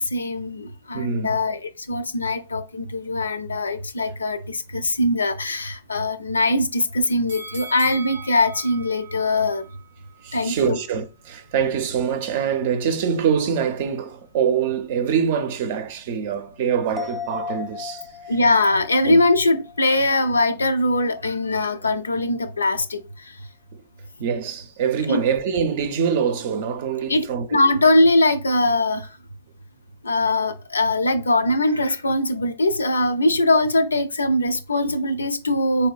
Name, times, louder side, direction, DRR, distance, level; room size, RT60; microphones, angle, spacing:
voice 1, 0.0-1.6 1.9-9.6 10.3-10.8 18.3-23.0 25.1-25.2 27.1-27.2 27.5-29.0 30.0-35.9, left 2 dB, 85° left, 0.5 m, -21 dB
voice 2, 0.9-1.4 10.2-18.3 19.0-19.2 23.7-23.8 24.2-27.6, right 7 dB, 50° right, 0.6 m, -24 dB
sound 1, 7.3-10.4 10.8-10.9, right 3 dB, 90° right, 0.8 m, -40 dB
sound 2, 17.0-20.7 21.0-21.1, left 7 dB, 5° left, 0.3 m, -36 dB
4.1 x 2.7 x 2.3 m
hypercardioid pair, 115°, 0 cm